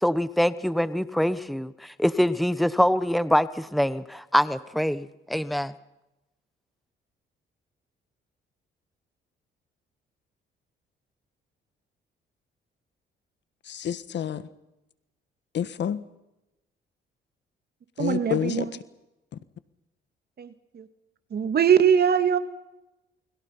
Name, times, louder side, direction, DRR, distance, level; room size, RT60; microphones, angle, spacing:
voice 1, 0.0-5.7, equal, ahead, 1.1 m, -24 dB
voice 2, 13.6-14.5 15.5-16.0 18.0-18.7, left 9 dB, 65° left, 1.6 m, -29 dB
voice 3, 18.0-18.6 20.4-20.9 21.3-22.4, right 8 dB, 55° right, 2.1 m, -22 dB
29.5 x 22.0 x 5.8 m
cardioid pair, 90°, 20 cm